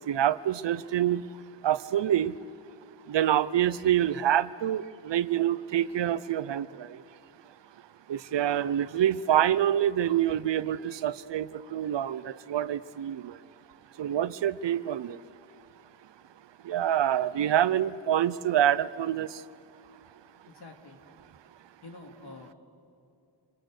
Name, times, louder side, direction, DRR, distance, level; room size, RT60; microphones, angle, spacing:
voice 1, 0.1-1.2 1.6-2.3 3.1-6.7 8.1-11.5 11.7-13.3 14.0-15.2 16.7-19.3, right 11 dB, 80° right, 17 dB, 0.7 m, -26 dB
voice 2, 20.5-21.0 21.8-22.5, left 3 dB, 65° left, 3 dB, 3.0 m, -47 dB
27.0 x 22.0 x 6.6 m, 2.6 s
wide cardioid pair, 95°, 42 cm